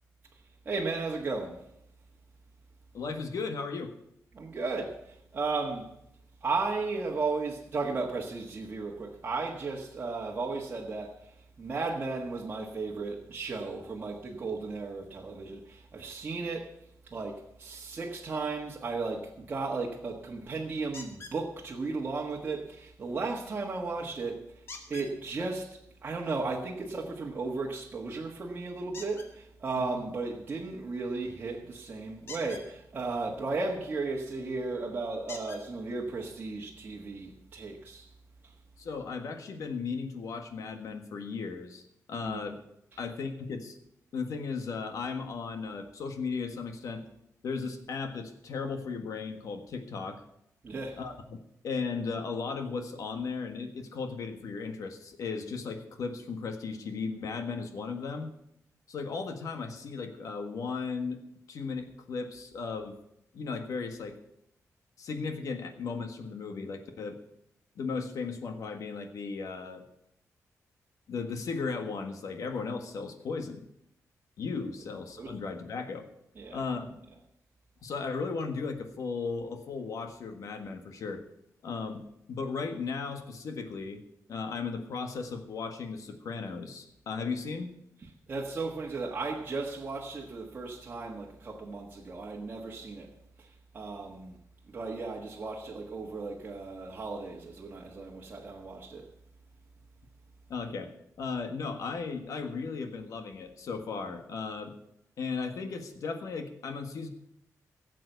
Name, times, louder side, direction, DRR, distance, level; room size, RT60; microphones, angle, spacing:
voice 1, 0.6-1.6 4.3-5.9 6.4-16.7 17.0-24.4 24.9-38.1 38.4-38.5 42.2-42.4 50.6-51.0 75.2-75.3 76.3-76.6 88.3-93.1 93.4-93.5 93.7-94.4 94.7-99.1, right 3 dB, 30° right, 1.5 m, -35 dB
voice 2, 2.9-3.9 29.8-30.0 38.8-42.6 43.0-43.8 44.1-47.1 47.4-50.2 51.0-58.3 58.9-61.2 61.5-63.0 63.3-64.2 65.0-67.2 67.7-69.8 71.1-73.7 74.4-76.0 76.5-77.0 77.8-81.2 81.6-82.0 82.3-84.0 84.3-87.7 100.5-100.9 101.2-104.7 105.2-107.1, left 4 dB, 65° left, 1.6 m, -36 dB
sound 1, 20.9-21.4 24.7-25.1 28.9-29.3 32.2-32.7 34.3-34.4 35.3-35.6 36.6-36.7 37.2-37.3, left 3 dB, 45° left, 2.1 m, -44 dB
17.0 x 7.7 x 6.7 m
wide cardioid pair, 180°, 6 cm